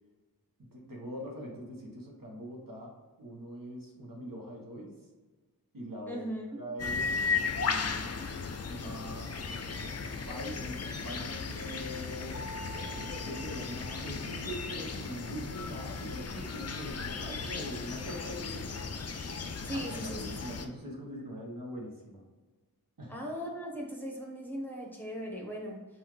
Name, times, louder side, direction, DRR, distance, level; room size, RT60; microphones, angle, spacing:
voice 1, 0.7-5.0 5.7-6.2 6.5-7.2 7.5-12.4 12.9-18.7 19.7-22.2 23.0-23.2, equal, 60° right, -2 dB, 1.3 m, -43 dB
voice 2, 6.1-6.6 19.6-20.3 23.1-25.8, equal, 5° left, -2 dB, 1.1 m, -38 dB
sound 1, 6.8-20.7, left 5 dB, 45° left, 0.5 m, -36 dB
Mallet percussion, 12.3-14.8, right 2 dB, 20° right, 1.3 m, -48 dB
5.6 x 2.6 x 3.2 m, 1.3 s
cardioid pair, 40°, 37 cm